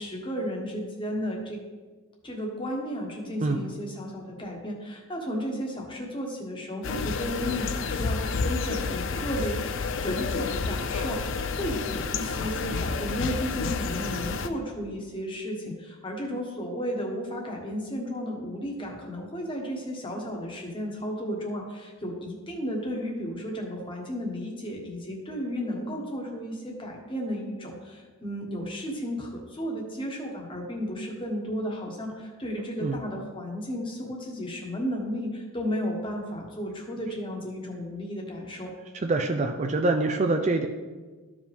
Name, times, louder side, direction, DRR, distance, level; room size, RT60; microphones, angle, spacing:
voice 1, 0.0-1.6 2.2-9.6 10.0-38.7, equal, 20° left, 0 dB, 1.3 m, -33 dB
sound 1, 6.8-14.5, left 4 dB, 55° left, 0.5 m, -30 dB
voice 2, 39.0-40.7, right 2 dB, 30° right, 5 dB, 0.4 m, -25 dB
13.5 x 5.0 x 3.5 m, 1.3 s
head